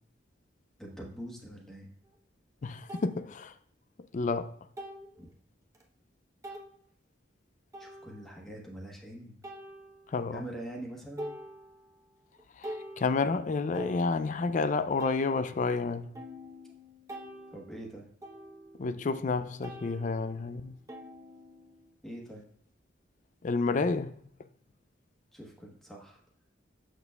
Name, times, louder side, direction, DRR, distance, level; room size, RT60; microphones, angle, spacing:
voice 1, 0.8-1.9 5.2-5.3 7.8-9.4 10.3-11.3 17.5-18.1 22.0-22.5 25.3-26.2, right 1 dB, ahead, 1.2 m, -44 dB
sound 1, 2.0-2.1 2.9-3.1 4.8-5.2 5.7-5.8 6.4-6.7 7.7-8.4 9.4-10.3 10.7-10.9 11.2-12.0 12.4-14.5 15.0-19.3 19.6-21.9, equal, 15° right, 0.8 m, -45 dB
voice 2, 2.6-3.5 4.1-4.6 10.1-10.4 12.6-16.1 18.8-20.7 23.4-24.1, left 4 dB, 45° left, 0.4 m, -30 dB
7.0 x 6.4 x 2.3 m
head